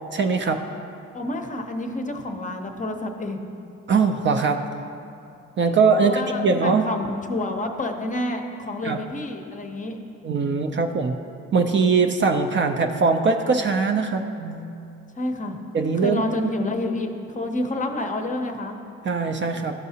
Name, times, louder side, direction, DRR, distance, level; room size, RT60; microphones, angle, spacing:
voice 1, 0.1-0.6 3.9-4.6 5.6-6.8 8.8-9.0 10.2-11.2 11.5-14.8 15.7-16.2 19.0-19.7, right 4 dB, 40° right, 5 dB, 0.5 m, -21 dB
voice 2, 1.1-3.4 5.6-10.0 15.2-15.6 16.0-18.8, left 1 dB, 25° left, 4 dB, 0.7 m, -29 dB
13.0 x 4.7 x 2.8 m, 2.7 s
cardioid pair, 90°, 30 cm